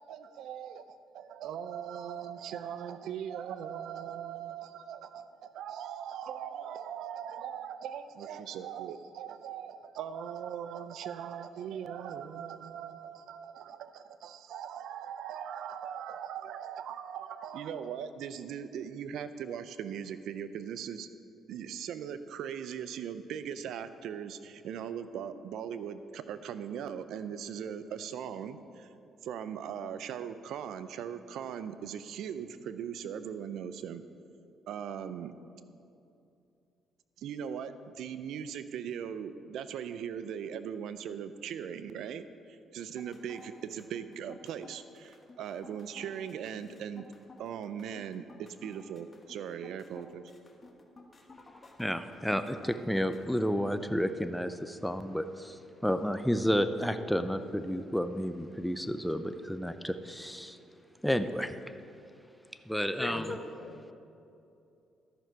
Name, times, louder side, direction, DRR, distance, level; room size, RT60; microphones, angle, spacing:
voice 1, 0.0-21.1 21.5-28.9 29.2-34.0 34.7-35.3 37.2-47.1 47.4-50.3, right 8 dB, 75° right, 12 dB, 0.5 m, -40 dB
sound 1, 42.8-53.4, left 3 dB, 30° left, 1.1 m, -54 dB
voice 2, 51.8-60.6 61.0-61.5 62.7-63.4, equal, ahead, 9 dB, 0.4 m, -31 dB
voice 3, 63.0-63.9, left 3 dB, 75° left, 3 dB, 1.2 m, -42 dB
13.0 x 6.0 x 4.6 m, 2.6 s
cardioid pair, 95°, 0 cm